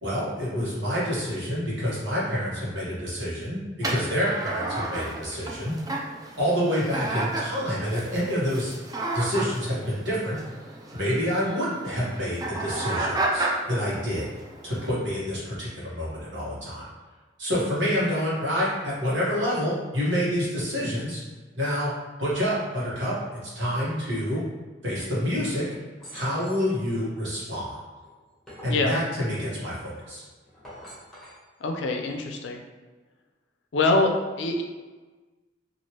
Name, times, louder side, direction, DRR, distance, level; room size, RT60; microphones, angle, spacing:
voice 1, 0.0-3.6 3.9-5.7 6.4-8.7 9.1-10.4 10.9-14.3 14.6-16.8 17.4-21.2 21.5-21.9 22.2-24.4 24.8-25.6 26.1-27.8 28.6-30.2, equal, 70° right, -7 dB, 1.2 m, -27 dB
sound 1, 3.8-14.9, right 2 dB, 20° right, 0.4 m, -32 dB
sound 2, 26.0-26.7 28.0-28.9 30.5-31.4, equal, 5° left, 1.0 m, -45 dB
voice 2, 28.6-28.9 31.6-32.6 33.7-34.1 34.4-34.6, left 2 dB, 70° left, 3 dB, 0.4 m, -24 dB
3.1 x 2.5 x 2.8 m, 1.3 s
head